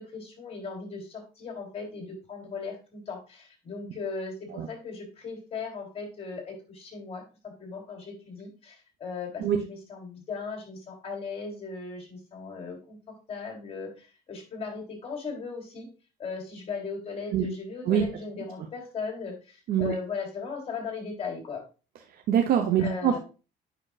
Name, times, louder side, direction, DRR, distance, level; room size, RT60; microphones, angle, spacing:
voice 1, 0.0-13.0 13.3-15.9 16.2-21.6 22.8-23.2, left 4 dB, 35° left, 1 dB, 3.4 m, -37 dB
voice 2, 22.3-23.2, right 9 dB, 60° right, 4 dB, 0.8 m, -24 dB
9.0 x 6.0 x 2.4 m, 0.33 s
cardioid pair, 110°, 17 cm